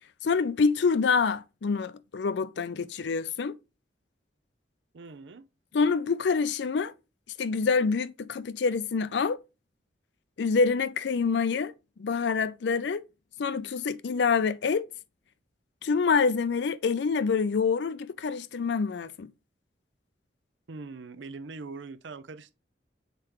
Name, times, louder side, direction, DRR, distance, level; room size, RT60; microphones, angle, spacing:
voice 1, 0.2-3.6 5.7-6.9 7.4-9.4 10.4-11.7 12.0-13.0 13.4-14.9 15.8-19.3, left 5 dB, 70° left, 0.4 m, -26 dB
voice 2, 4.9-5.4 20.7-22.5, right 4 dB, 80° right, 0.6 m, -42 dB
6.7 x 4.8 x 3.0 m
head